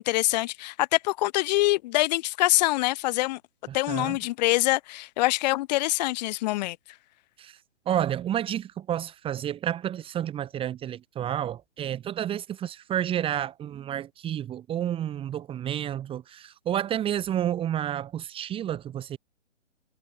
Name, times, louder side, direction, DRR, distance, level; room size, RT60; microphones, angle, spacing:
voice 1, 0.0-3.4 3.7-6.8, left 19 dB, 35° left, 7.8 m, -25 dB
voice 2, 3.7-4.2 7.4-7.6 7.8-19.2, right 10 dB, 15° right, 3.5 m, -30 dB
hypercardioid pair, 140°, 38 cm